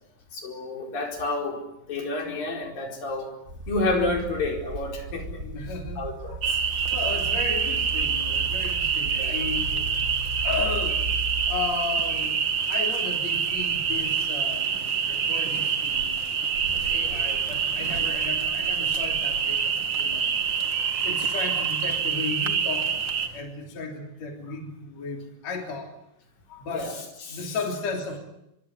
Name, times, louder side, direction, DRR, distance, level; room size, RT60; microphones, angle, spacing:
voice 1, 0.3-1.6 1.9-3.3 3.7-5.4 6.0-6.6 9.2-9.3 17.1-17.2 26.7-27.0 27.3-27.6, left 2 dB, 85° left, 2 dB, 6.4 m, -30 dB
sound 1, 3.5-12.3 13.0-13.4 13.9-14.0 17.6-18.3, right 2 dB, 25° right, 4.5 m, -36 dB
voice 2, 5.4-6.0 6.3-6.5 6.9-9.9 10.4-11.0 11.5-16.2 16.8-20.2 21.0-22.9 23.3-25.9 26.5-26.9 27.3-28.2, left 4 dB, 50° left, 2 dB, 4.4 m, -34 dB
sound 2, 6.4-23.3, right 7 dB, 50° right, 1.5 m, -26 dB
sound 3, 11.5-23.4, right 4 dB, 90° right, 4.7 m, -43 dB
26.0 x 23.5 x 9.7 m, 0.85 s
omnidirectional pair, 3.9 m